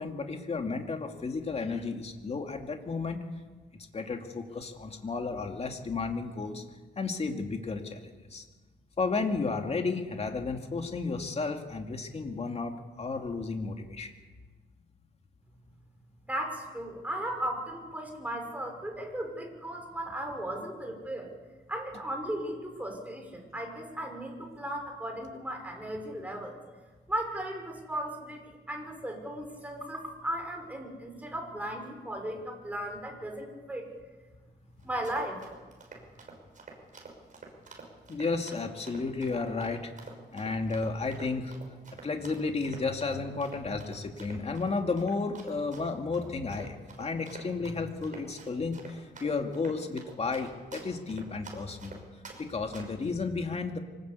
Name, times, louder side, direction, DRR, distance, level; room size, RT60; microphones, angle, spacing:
voice 1, 0.0-3.2 3.9-6.6 7.0-8.4 9.0-14.1 38.1-39.9 40.3-41.6 42.0-52.0 52.4-53.8, left 4 dB, 35° left, 4 dB, 2.5 m, -33 dB
voice 2, 16.3-21.3 21.7-26.6 27.1-33.9 34.8-35.4, right 1 dB, 10° right, 2 dB, 5.7 m, -36 dB
Run, 34.8-52.4 52.7-53.1, right 4 dB, 45° right, 6.2 m, -48 dB
25.0 x 20.0 x 8.4 m, 1.3 s
cardioid pair, 125°, 19 cm